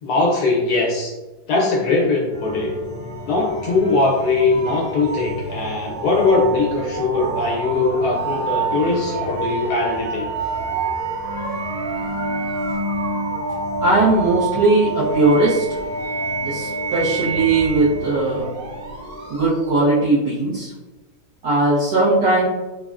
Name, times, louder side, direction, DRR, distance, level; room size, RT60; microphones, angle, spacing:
voice 1, 0.0-1.1 1.5-2.7 3.3-10.3, left 3 dB, 75° left, -3 dB, 1.0 m, -20 dB
sound 1, 2.3-19.8, right 3 dB, 50° right, 0.7 m, -27 dB
voice 2, 13.8-15.6 16.4-18.5 19.3-20.7 21.4-22.5, right 2 dB, 80° right, -9 dB, 1.3 m, -18 dB
3.5 x 2.0 x 2.3 m, 1.1 s
omnidirectional pair, 1.7 m